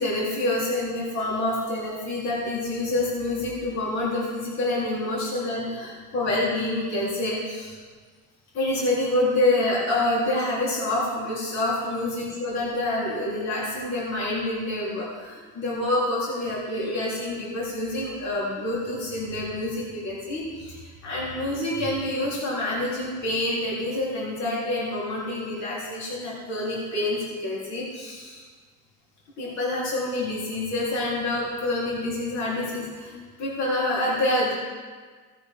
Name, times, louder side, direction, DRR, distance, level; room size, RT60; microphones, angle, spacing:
voice 1, 0.0-7.8 8.5-28.4 29.4-34.5, left 1 dB, 55° left, -6 dB, 3.8 m, -27 dB
18.0 x 9.2 x 3.7 m, 1.5 s
cardioid pair, 175°, 31 cm